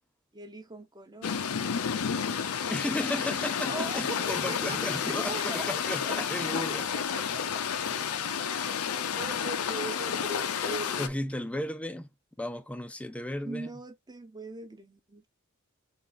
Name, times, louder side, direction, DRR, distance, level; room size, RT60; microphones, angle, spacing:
voice 1, 0.3-1.5 3.7-5.7 6.0-6.2 6.7-7.0 9.2-11.1 13.4-15.2, right 2 dB, 20° right, 0.8 m, -40 dB
sound 1, 1.2-11.1, left 7 dB, 90° left, 0.6 m, -31 dB
voice 2, 2.7-6.8 11.0-12.1 12.4-13.7, left 1 dB, 5° left, 0.4 m, -34 dB
3.8 x 3.4 x 3.9 m
head